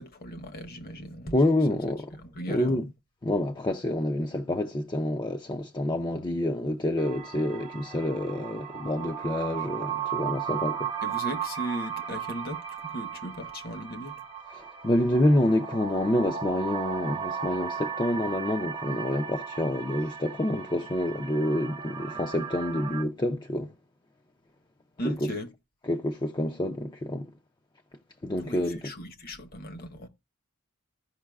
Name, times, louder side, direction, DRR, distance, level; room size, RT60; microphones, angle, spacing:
voice 1, 0.0-1.4 1.7-1.8 2.1-2.8 11.0-14.2 25.0-25.5 28.4-30.1, equal, 45° left, 0.9 m, -37 dB
voice 2, 1.3-2.1 2.5-2.9 3.2-10.9 14.5-23.7 25.0-25.1 25.9-27.3 28.2-28.9, left 1 dB, 20° left, 0.5 m, -27 dB
sound 1, 7.0-23.0, right 8 dB, 25° right, 0.8 m, -36 dB
15.0 x 5.5 x 2.3 m
head